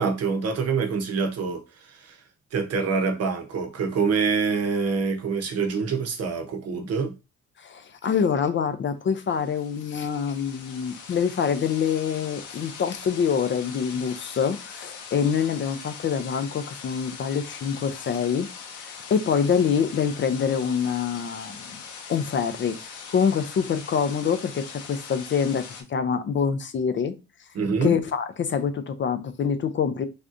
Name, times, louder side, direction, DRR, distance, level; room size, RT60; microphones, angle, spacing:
voice 1, 0.0-1.6 1.9-2.2 2.5-7.1 27.5-27.9, right 5 dB, 55° right, 0.8 m, -25 dB
voice 2, 7.6-18.5 18.8-21.8 22.1-24.6 24.9-27.1 27.8-30.1, left 7 dB, 40° left, 0.4 m, -25 dB
sound 1, 9.2-25.8, left 6 dB, 80° left, 0.8 m, -41 dB
3.4 x 2.6 x 2.5 m
cardioid pair, 90°, 30 cm